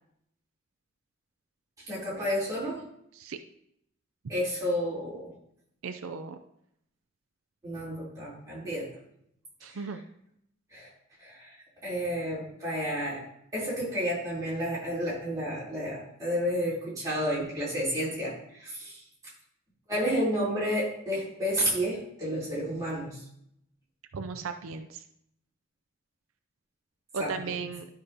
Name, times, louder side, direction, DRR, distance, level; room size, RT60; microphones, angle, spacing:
voice 1, 1.9-2.8 4.3-5.3 7.6-8.9 9.7-9.8 10.7-10.9 11.2-11.5 11.8-13.2 13.5-19.0 19.9-23.2 27.2-27.5, equal, 15° right, -8 dB, 3.3 m, -31 dB
voice 2, 5.8-6.4 9.6-10.0 24.1-25.0 27.1-27.9, right 4 dB, 85° right, 7 dB, 0.5 m, -36 dB
12.0 x 5.1 x 2.8 m, 0.74 s
head